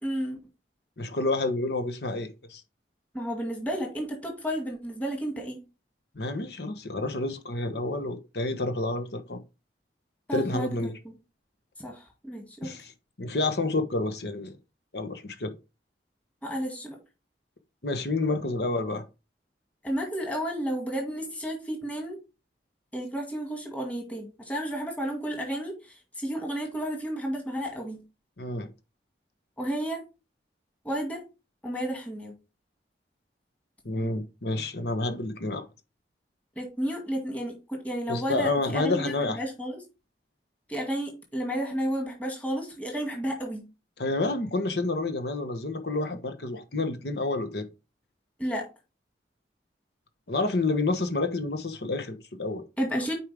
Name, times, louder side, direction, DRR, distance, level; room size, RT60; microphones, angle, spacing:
voice 1, 0.0-0.4 3.1-5.6 10.3-11.1 11.8-12.7 16.4-17.0 19.8-22.2 22.9-28.0 29.6-30.0 30.8-31.2 31.6-32.3 36.6-39.8 40.7-43.6 48.4-48.7 52.8-53.1, equal, 10° left, 2.1 m, -32 dB
voice 2, 1.0-2.6 6.1-9.4 10.3-10.9 12.6-12.9 13.2-14.5 14.9-15.5 17.8-19.0 28.4-28.7 33.8-35.7 38.1-39.4 44.0-47.7 50.3-52.6, left 2 dB, 70° left, 1.2 m, -29 dB
8.6 x 4.6 x 3.5 m
head